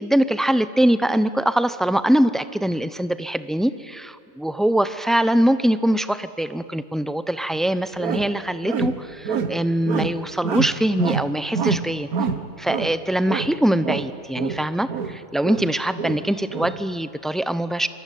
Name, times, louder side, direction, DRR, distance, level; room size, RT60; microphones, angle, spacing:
voice 1, 0.0-12.1 12.6-17.9, right 1 dB, ahead, 13 dB, 0.4 m, -22 dB
sound 1, 7.5-7.6 8.0-8.3 8.6-9.6 9.8-10.1 10.4-11.3 11.5-13.0 13.2-13.6 13.8-15.2 15.4-16.8, right 6 dB, 85° right, 1.7 m, -26 dB
27.5 x 23.0 x 9.3 m, 2.3 s
omnidirectional pair, 1.5 m